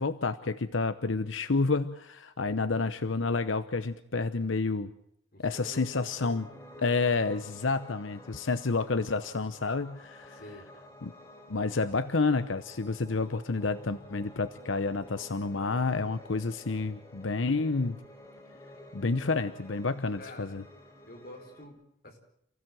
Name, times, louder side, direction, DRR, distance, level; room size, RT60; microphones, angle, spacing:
voice 1, 0.0-4.9 5.4-6.5 6.8-10.4 11.0-11.1 11.5-18.0 18.9-20.6, left 3 dB, 90° left, 11 dB, 0.9 m, -29 dB
voice 2, 5.3-6.1 10.3-10.6 20.2-20.6 21.1-21.8 22.0-22.2, left 1 dB, 50° left, 3 dB, 5.1 m, -48 dB
Piano, 5.5-21.6, left 1 dB, 15° left, 3.1 m, -51 dB
29.0 x 16.0 x 7.6 m, 0.75 s
head